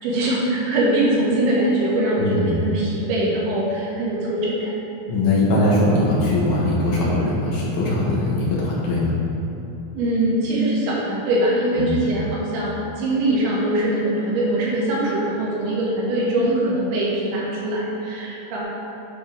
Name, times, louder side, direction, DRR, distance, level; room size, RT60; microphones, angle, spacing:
voice 1, 0.0-4.7 10.0-18.6, right 1 dB, 85° right, -5 dB, 3.9 m, -22 dB
voice 2, 2.2-2.5 5.1-9.1 11.8-12.0, left 1 dB, 70° left, -6 dB, 2.9 m, -20 dB
11.0 x 3.7 x 5.2 m, 3.0 s
omnidirectional pair, 5.2 m